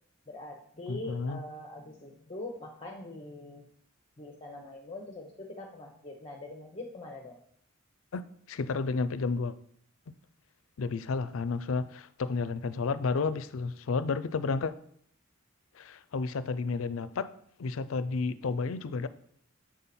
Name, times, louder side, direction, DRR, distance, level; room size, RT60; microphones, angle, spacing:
voice 1, 0.3-3.6 4.2-7.4, left 2 dB, 25° left, 0 dB, 0.8 m, -43 dB
voice 2, 0.9-1.4 8.1-9.6 10.1-10.2 10.8-14.7 15.8-17.3 17.6-19.1, left 4 dB, 75° left, 15 dB, 0.4 m, -31 dB
7.4 x 5.5 x 4.2 m, 0.66 s
head